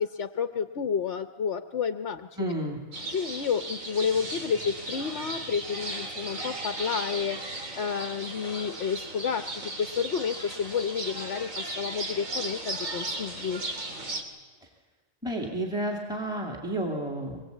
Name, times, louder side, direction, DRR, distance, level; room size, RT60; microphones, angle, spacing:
voice 1, 0.0-2.5 3.1-13.6, left 6 dB, 60° left, 8 dB, 1.1 m, -30 dB
voice 2, 2.4-2.8 14.6-14.7 15.2-17.4, right 1 dB, 5° right, 1 dB, 2.6 m, -31 dB
sound 1, 2.9-14.2, right 2 dB, 90° right, 3.2 m, -36 dB
24.5 x 21.0 x 8.4 m, 1.5 s
omnidirectional pair, 1.3 m